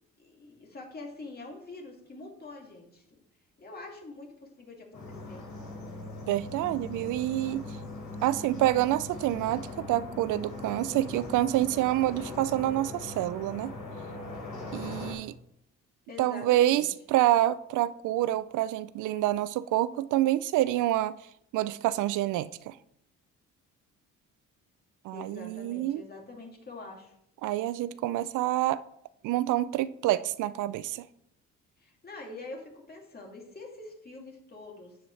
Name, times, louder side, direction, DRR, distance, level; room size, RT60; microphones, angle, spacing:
voice 1, 0.2-3.0 3.6-5.4 16.1-16.9 25.1-27.1 31.8-35.0, left 2 dB, 30° left, 2.6 m, -45 dB
sound 1, 4.9-15.1, left 2 dB, 80° left, 4.1 m, -40 dB
voice 2, 6.3-7.6 8.2-13.7 14.7-15.4 16.2-21.2 21.5-22.8 25.0-26.0 27.4-28.8 29.2-31.1, right 14 dB, 80° right, 0.5 m, -27 dB
11.0 x 7.5 x 3.3 m
cardioid pair, 90°, 30 cm